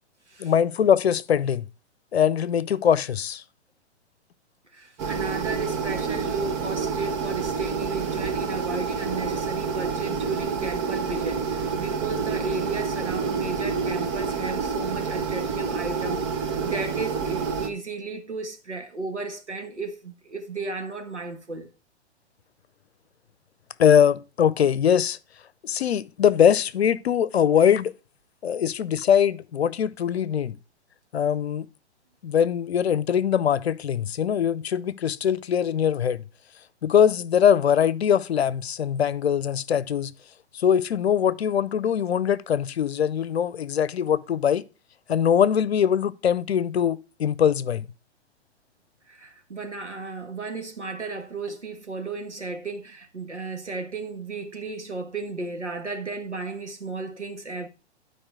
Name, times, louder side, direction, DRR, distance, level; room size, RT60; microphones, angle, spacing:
voice 1, 0.4-1.7 2.1-3.4 23.8-25.2 25.6-27.9 28.4-30.6 31.1-31.7 32.2-36.2 36.8-40.1 40.5-44.6 45.1-47.9, left 8 dB, 65° left, 0.8 m, -22 dB
voice 2, 4.7-21.7 49.1-57.7, right 3 dB, 90° right, 1.9 m, -34 dB
sound 1, 5.0-17.7, right 5 dB, 30° right, 1.3 m, -28 dB
12.0 x 4.8 x 4.8 m
figure-of-eight pair, 110°, 34 cm